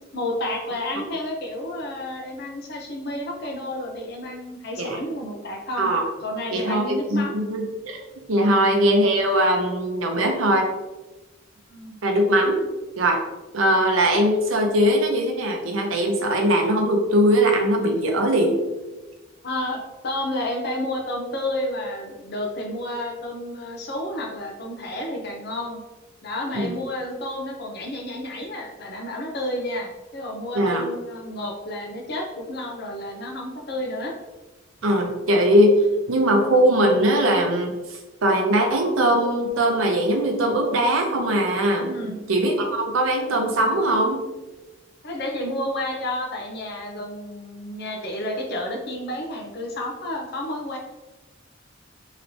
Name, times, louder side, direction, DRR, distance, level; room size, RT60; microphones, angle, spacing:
voice 1, 0.1-5.9 6.2-7.4 8.4-8.7 11.7-12.0 13.7-13.9 19.4-25.8 26.2-34.1 41.8-42.2 45.0-50.8, left 1 dB, 55° left, 1 dB, 0.6 m, -31 dB
voice 2, 6.5-8.0 8.3-10.7 12.0-12.6 13.0-13.2 13.5-18.6 26.6-26.7 30.5-30.8 34.8-35.8 36.1-37.7 38.2-41.9 42.3-44.2, right 1 dB, 85° right, 2 dB, 0.6 m, -20 dB
3.1 x 2.9 x 2.7 m, 1.1 s
head